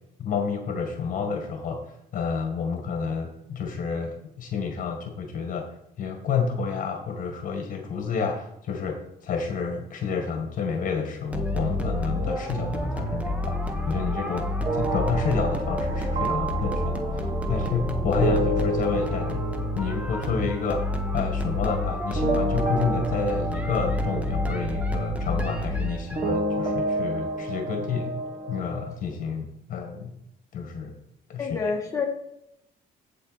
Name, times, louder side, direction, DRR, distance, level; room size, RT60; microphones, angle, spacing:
voice 1, 0.2-1.8 2.1-5.7 6.0-19.5 19.7-20.8 21.1-28.1 28.5-30.1 30.5-31.0 31.3-31.5, left 5 dB, 50° left, 4 dB, 1.8 m, -29 dB
sound 1, 11.3-26.2, left 1 dB, 10° right, 1.2 m, -29 dB
sound 2, 14.6-21.9 22.1-28.9, right 2 dB, 40° right, 1.5 m, -31 dB
voice 2, 31.4-32.0, left 5 dB, 20° left, -1 dB, 2.0 m, -27 dB
8.3 x 7.8 x 4.2 m, 0.77 s
cardioid pair, 110°, 17 cm